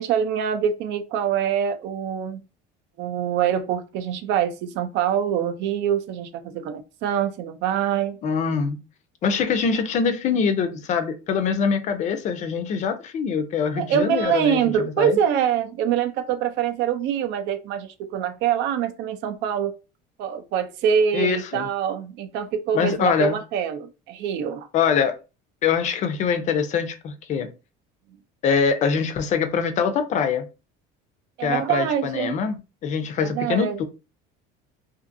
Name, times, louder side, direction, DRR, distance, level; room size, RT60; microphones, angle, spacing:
voice 1, 0.0-2.4 3.0-8.2 13.8-19.7 20.2-24.7 31.4-32.3 33.2-33.8, right 8 dB, 65° right, 0.5 m, -24 dB
voice 2, 8.2-8.8 9.2-14.6 15.0-15.2 21.1-21.7 22.7-23.4 24.7-25.2 25.6-27.5 28.4-30.5 31.4-33.8, left 6 dB, 40° left, 0.5 m, -23 dB
2.6 x 2.5 x 2.5 m
cardioid pair, 145°, 20 cm